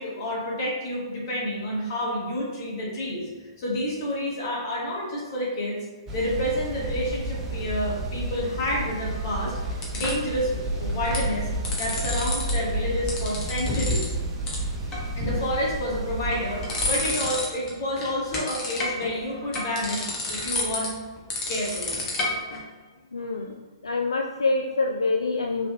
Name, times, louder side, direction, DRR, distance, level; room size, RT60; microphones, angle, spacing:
voice 1, 0.0-3.3 3.6-5.8 6.1-9.5 9.9-11.5 11.8-14.1 15.2-20.9 21.5-22.3, equal, 50° left, -3 dB, 1.5 m, -29 dB
sound 1, 6.1-17.2, right 1 dB, 20° right, 0.6 m, -31 dB
sound 2, 9.1-10.3 10.9-11.3 11.5-12.5 12.8-14.1 14.5-14.6 14.9-15.5 16.0-17.7 18.0-22.6, left 2 dB, 25° left, 1.0 m, -30 dB
voice 2, 23.1-25.7, left 3 dB, 80° left, 1 dB, 0.3 m, -26 dB
5.0 x 3.3 x 2.2 m, 1.4 s
figure-of-eight pair, 120°, 3 cm